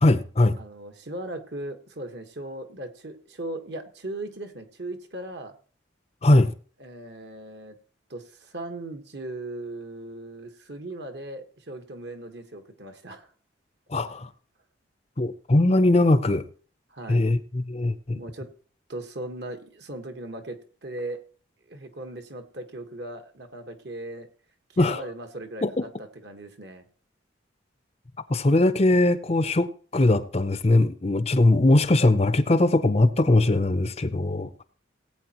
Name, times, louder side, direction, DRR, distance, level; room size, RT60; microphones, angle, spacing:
voice 1, 0.0-0.6 6.2-6.5 13.9-14.3 15.2-16.5 17.1-18.2 24.8-25.1 25.6-25.8 28.3-34.5, left 2 dB, 30° left, 0.6 m, -21 dB
voice 2, 0.6-5.5 6.8-7.8 8.1-13.3 16.9-17.3 18.1-18.5 18.9-21.2 21.7-24.3 24.7-25.6 26.0-26.8, right 1 dB, 55° right, 1.4 m, -38 dB
18.5 x 8.6 x 3.0 m
head